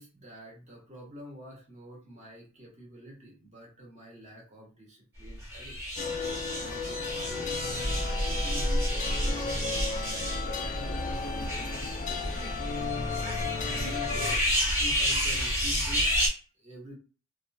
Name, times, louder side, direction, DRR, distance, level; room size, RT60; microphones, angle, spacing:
voice 1, 0.0-5.8 6.4-14.5 14.8-16.1 16.6-17.0, equal, 35° right, -3 dB, 1.1 m, -47 dB
sound 1, 5.4-16.3, equal, 10° right, 1.2 m, -30 dB
sound 2, 6.0-14.4, left 5 dB, 35° left, 0.3 m, -35 dB
2.9 x 2.3 x 2.6 m, 0.36 s
head